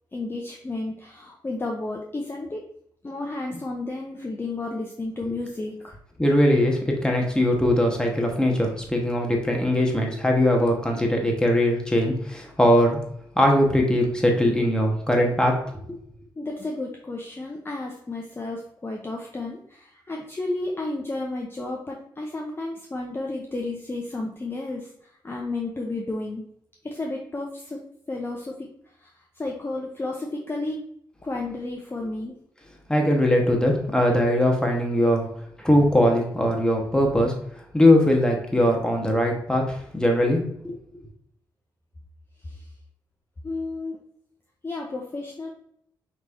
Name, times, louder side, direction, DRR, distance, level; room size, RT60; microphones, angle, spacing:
voice 1, 0.1-2.6 3.0-6.0 16.4-26.4 26.8-27.8 28.1-30.8 31.2-32.3 42.4-42.7 43.4-44.0 44.6-45.5, left 2 dB, 25° left, 0 dB, 0.7 m, -32 dB
voice 2, 6.2-13.0 13.3-15.6 32.9-35.3 35.6-37.3 37.7-40.8, left 1 dB, 10° left, 1 dB, 1.2 m, -21 dB
5.3 x 3.2 x 2.6 m, 0.71 s
cardioid pair, 60°, 9 cm